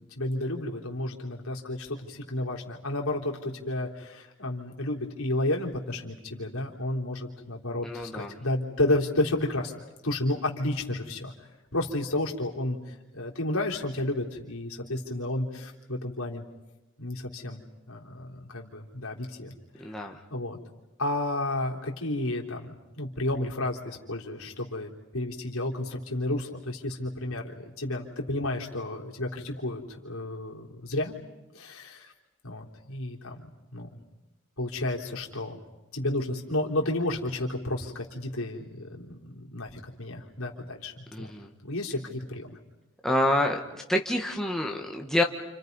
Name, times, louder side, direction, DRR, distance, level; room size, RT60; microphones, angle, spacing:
voice 1, 0.0-11.3 11.7-16.4 17.0-17.6 17.9-20.6 21.0-31.2 31.5-32.1 32.4-33.9 34.6-35.6 35.9-41.3 41.6-42.6, left 1 dB, 80° left, 0 dB, 3.6 m, -32 dB
voice 2, 7.8-8.3 19.8-20.2 41.1-41.5 43.0-43.6 43.9-45.2, left 1 dB, ahead, 1 dB, 1.5 m, -27 dB
29.5 x 28.0 x 5.5 m, 1.0 s
head